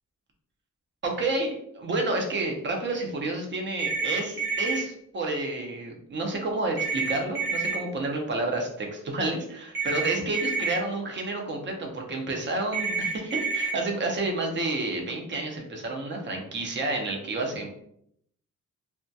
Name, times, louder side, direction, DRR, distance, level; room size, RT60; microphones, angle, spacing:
voice 1, 1.0-17.7, right 2 dB, 35° right, 1 dB, 0.5 m, -30 dB
sound 1, 3.8-4.8 6.8-7.8 9.7-10.7 12.7-13.7, right 4 dB, 85° right, 1.1 m, -28 dB
2.2 x 2.1 x 2.6 m, 0.72 s
wide cardioid pair, 170°, 32 cm